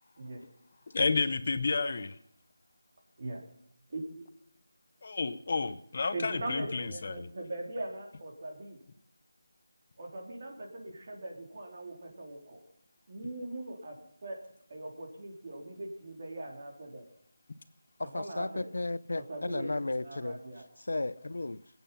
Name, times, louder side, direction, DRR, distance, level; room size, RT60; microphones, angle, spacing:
voice 1, 0.9-2.2 5.0-7.3, left 4 dB, 45° left, 0.8 m, -31 dB
voice 2, 3.9-4.3 6.1-8.8 10.0-12.6 13.1-14.0 14.2-14.4 14.7-17.1 18.0-18.7 19.1-19.7 20.0-20.6, right 2 dB, 40° right, 3.7 m, -41 dB
voice 3, 18.0-20.4 20.8-21.6, left 2 dB, 75° left, 0.6 m, -34 dB
21.0 x 9.1 x 5.5 m
figure-of-eight pair, 170°, 0 cm